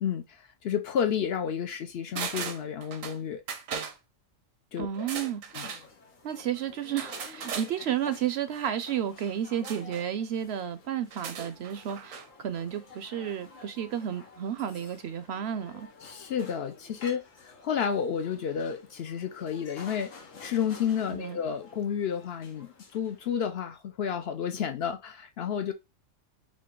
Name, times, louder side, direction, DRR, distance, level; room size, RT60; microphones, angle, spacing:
voice 1, 0.0-3.4 4.7-5.1 5.5-5.7 16.0-20.1 20.4-25.7, left 8 dB, 60° left, 0.7 m, -31 dB
sound 1, 2.1-3.2 3.5-4.0 4.9-5.8 7.0-7.7 9.6-10.1 11.0-12.3 12.6-12.7, right 6 dB, 90° right, 1.2 m, -37 dB
voice 2, 4.8-5.4 6.2-15.9 21.1-21.4, right 9 dB, 65° right, 0.7 m, -32 dB
sound 2, 5.6-23.5, left 4 dB, 85° left, 1.5 m, -51 dB
5.0 x 2.7 x 3.7 m
omnidirectional pair, 1.3 m